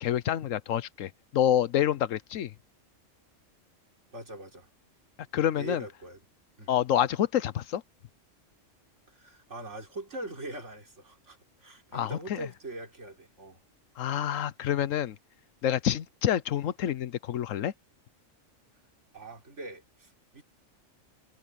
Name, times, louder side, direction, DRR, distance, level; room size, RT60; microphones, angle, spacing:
voice 1, 0.0-2.5 5.3-5.8 6.7-7.8 11.9-12.5 14.0-15.2 15.6-17.7, left 10 dB, 80° left, 1.1 m, -27 dB
voice 2, 4.1-4.7 5.6-6.2 6.6-6.7 9.1-13.6 19.1-20.4, right 2 dB, 65° right, 4.3 m, -42 dB
omnidirectional pair, 1.3 m